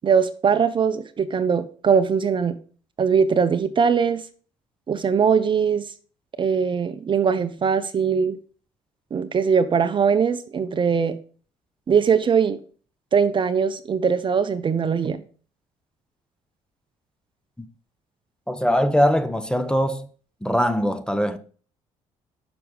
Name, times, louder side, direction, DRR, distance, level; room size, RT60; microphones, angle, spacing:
voice 1, 0.0-2.6 3.0-4.2 4.9-5.8 6.4-8.4 9.1-11.2 11.9-12.6 13.1-15.2, right 6 dB, 35° right, 0.6 m, -21 dB
voice 2, 18.5-20.1 20.4-21.4, equal, 5° left, 0.7 m, -21 dB
6.0 x 4.6 x 5.4 m
supercardioid pair, 85°, 14 cm